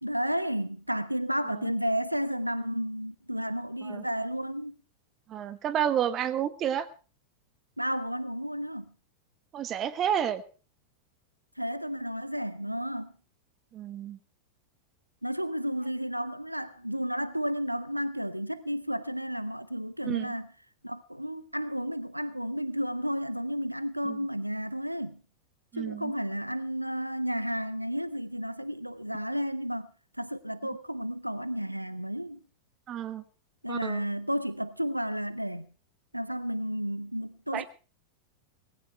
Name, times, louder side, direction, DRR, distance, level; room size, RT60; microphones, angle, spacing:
voice 1, 0.0-4.8 7.8-8.9 11.6-13.1 15.2-20.5 20.8-25.2 25.7-29.9 30.2-32.4 33.6-35.7 36.1-37.6, equal, 90° right, 0.7 m, -32 dB
voice 2, 5.3-6.9 9.5-10.4 13.7-14.2 20.0-20.3 24.0-24.3 25.7-26.1 32.9-33.2 33.7-34.0 37.5-37.6, right 9 dB, 30° right, 1.5 m, -30 dB
19.0 x 17.0 x 3.4 m
figure-of-eight pair, 90°, 0 cm